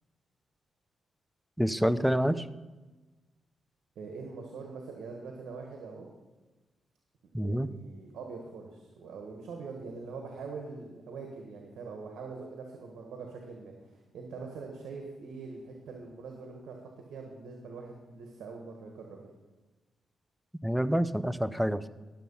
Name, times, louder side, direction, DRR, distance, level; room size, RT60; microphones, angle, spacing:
voice 1, 1.6-2.5 7.3-7.7 20.6-21.9, equal, 5° right, 15 dB, 0.5 m, -27 dB
voice 2, 3.9-6.1 7.3-16.8 17.1-19.3, right 4 dB, 80° right, 2 dB, 1.4 m, -43 dB
12.0 x 7.1 x 5.5 m, 1.2 s
cardioid pair, 65°, 0 cm